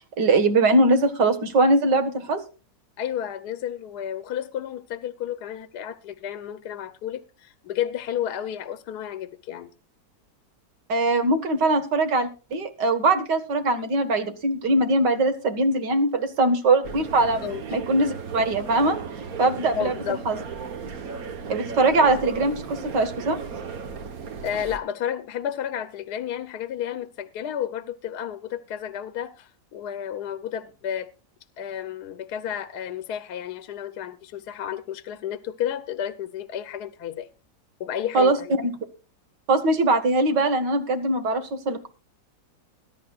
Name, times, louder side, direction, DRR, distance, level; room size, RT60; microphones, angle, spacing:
voice 1, 0.2-2.4 10.9-17.4 17.7-19.0 19.4-19.9 20.3-20.4 21.5-23.4 38.1-38.4 38.6-38.7 39.5-41.9, right 2 dB, 90° right, 2.3 m, -21 dB
voice 2, 3.0-9.7 17.4-17.6 19.8-20.2 24.4-31.1 31.6-37.3 37.8-38.5, left 9 dB, 70° left, 1.3 m, -32 dB
sound 1, 16.8-24.8, right 5 dB, 60° right, 1.6 m, -35 dB
21.0 x 11.0 x 2.4 m
omnidirectional pair, 1.8 m